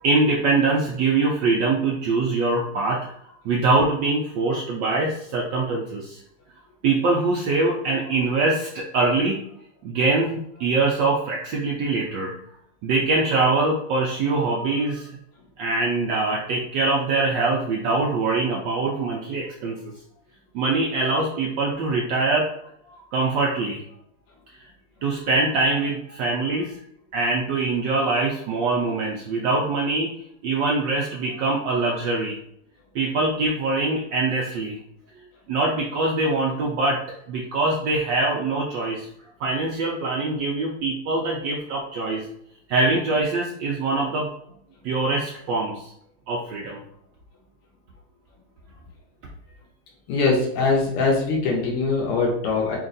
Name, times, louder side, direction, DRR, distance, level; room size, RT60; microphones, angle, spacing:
voice 1, 0.0-3.1 3.4-6.2 6.8-9.4 9.8-12.3 12.8-15.1 15.6-19.8 20.5-22.5 23.1-23.8 25.0-26.8 27.1-30.1 30.4-32.4 32.9-34.8 35.5-37.0 37.3-39.1 39.4-42.3 42.7-44.3 44.8-45.9 46.3-46.8, right 3 dB, 70° right, -3 dB, 1.1 m, -23 dB
voice 2, 50.1-52.8, left 3 dB, 90° left, -2 dB, 1.9 m, -22 dB
4.4 x 2.5 x 3.9 m, 0.71 s
omnidirectional pair, 2.4 m